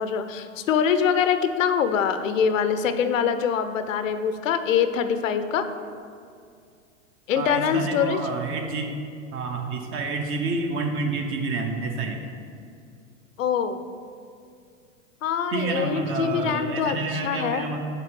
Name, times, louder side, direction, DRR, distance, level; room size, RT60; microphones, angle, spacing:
voice 1, 0.0-5.7 7.3-8.2 13.4-13.9 15.2-17.6, left 7 dB, 70° left, 10 dB, 0.6 m, -24 dB
voice 2, 7.3-8.9 9.3-12.2 15.5-17.9, right 3 dB, 30° right, 4 dB, 0.9 m, -28 dB
6.7 x 4.0 x 6.2 m, 2.3 s
hypercardioid pair, 100°, 40 cm